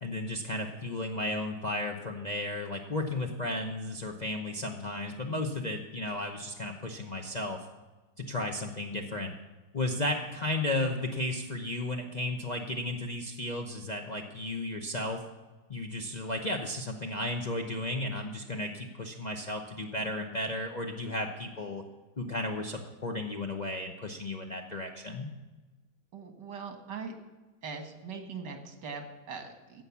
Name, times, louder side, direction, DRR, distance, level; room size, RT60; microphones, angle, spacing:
voice 1, 0.0-7.6 8.2-9.4 9.7-15.2 15.7-21.8 22.2-25.3, left 1 dB, 40° left, 1 dB, 0.6 m, -34 dB
voice 2, 26.1-27.1 27.6-29.8, right 5 dB, 85° right, 5 dB, 2.1 m, -41 dB
15.5 x 5.6 x 7.1 m, 1.2 s
omnidirectional pair, 1.8 m